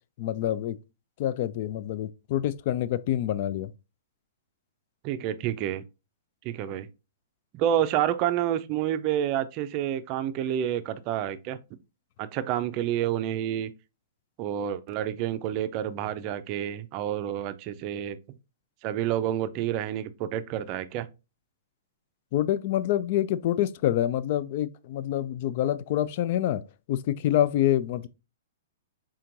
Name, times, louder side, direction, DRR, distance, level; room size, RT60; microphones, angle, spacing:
voice 1, 0.2-0.8 1.2-3.7 22.3-26.6 26.9-28.1, left 12 dB, 50° left, 0.3 m, -26 dB
voice 2, 5.0-5.8 6.4-6.9 7.5-11.6 12.2-13.7 14.4-18.2 18.8-21.1, right 11 dB, 40° right, 0.4 m, -29 dB
4.4 x 3.7 x 2.5 m
hypercardioid pair, 135°, 0 cm